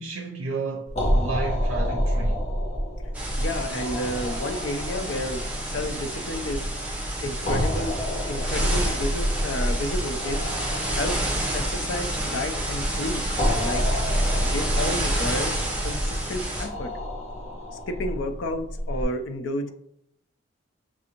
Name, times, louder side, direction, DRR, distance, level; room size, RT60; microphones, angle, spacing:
voice 1, 0.0-2.4, right 3 dB, 70° right, 0.6 m, -32 dB
sound 1, 0.9-19.0, equal, 30° left, 1.1 m, -29 dB
sound 2, 3.1-16.7, right 1 dB, 5° right, 0.8 m, -30 dB
voice 2, 3.4-6.6 7.2-8.0 8.3-10.5 10.9-11.2 11.5-13.8 14.4-15.5 15.8-16.9 17.9-19.7, left 1 dB, 60° left, 0.5 m, -31 dB
6.0 x 2.5 x 2.9 m
head